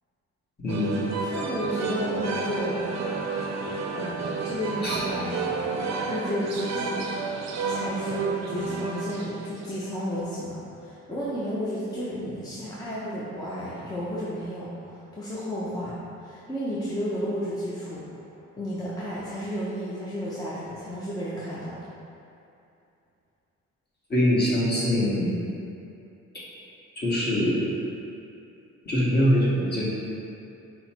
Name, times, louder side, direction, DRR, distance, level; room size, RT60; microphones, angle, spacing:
voice 1, 0.6-1.2 4.8-5.0 24.1-25.3 27.0-27.6 28.9-29.8, equal, 35° left, -8 dB, 1.4 m, -23 dB
sound 1, 0.7-9.9, right 4 dB, 60° right, 0.6 m, -30 dB
voice 2, 1.2-2.8 3.3-3.5 3.9-5.8 6.1-7.1 7.7-18.1 18.6-21.8, equal, 15° left, -9 dB, 0.7 m, -32 dB
5.3 x 2.2 x 4.4 m, 2.7 s
cardioid pair, 90°, 30 cm